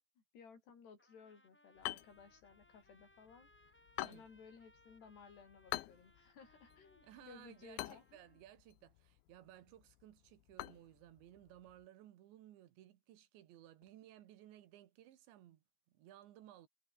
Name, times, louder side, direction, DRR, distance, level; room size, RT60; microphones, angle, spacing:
voice 1, 0.0-8.4, left 6 dB, 70° left, 7.3 m, -59 dB
Trumpet, 1.0-8.4, left 1 dB, 5° left, 1.0 m, -70 dB
sound 1, 1.8-11.9, left 16 dB, 85° left, 3.4 m, -49 dB
voice 2, 7.0-16.7, right 13 dB, 85° right, 4.0 m, -59 dB
omnidirectional pair, 5.0 m